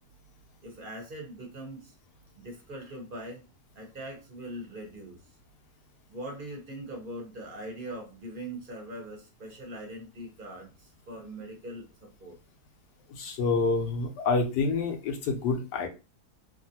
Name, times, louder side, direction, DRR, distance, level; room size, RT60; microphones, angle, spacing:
voice 1, 0.6-1.9 2.4-3.4 3.7-5.2 6.1-12.4, right 1 dB, 40° right, 1 dB, 0.8 m, -41 dB
voice 2, 13.1-15.9, left 4 dB, 80° left, 2 dB, 1.2 m, -27 dB
2.9 x 2.5 x 2.7 m, 0.30 s
omnidirectional pair, 1.8 m